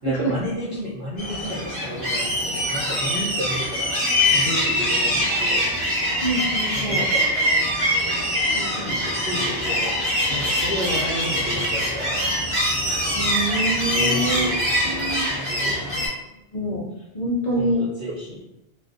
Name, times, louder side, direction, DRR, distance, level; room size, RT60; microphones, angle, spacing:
voice 1, 0.0-4.0 4.3-5.7 6.7-7.3 8.4-10.0 10.3-12.3 13.9-15.8 17.6-18.4, equal, 60° right, -8 dB, 0.8 m, -32 dB
sound 1, 1.2-16.1, equal, 5° left, 1.1 m, -23 dB
voice 2, 6.2-7.1 13.1-14.5 14.8-15.3 16.5-16.9 17.1-17.8, right 1 dB, 50° left, -4 dB, 0.5 m, -25 dB
2.4 x 2.2 x 2.4 m, 0.92 s
omnidirectional pair, 1.1 m